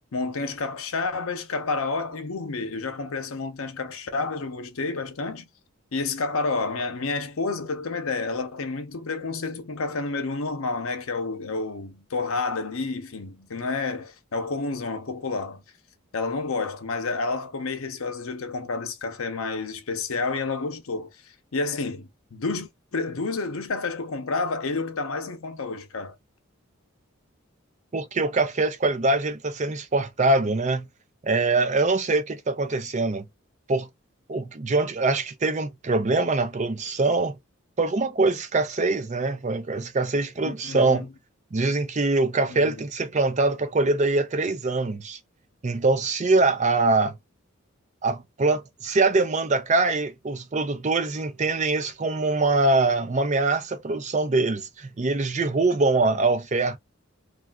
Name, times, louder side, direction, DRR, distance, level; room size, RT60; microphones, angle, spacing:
voice 1, 0.1-5.5 5.9-15.6 16.1-21.1 21.5-26.1 40.4-41.1 42.5-42.8, left 3 dB, 80° left, 0.7 m, -30 dB
voice 2, 27.9-30.9 31.2-33.2 33.7-33.9 34.3-37.3 37.8-41.1 41.5-45.2 45.6-47.2 48.0-56.8, right 3 dB, 35° right, 0.5 m, -23 dB
3.3 x 2.4 x 2.3 m
head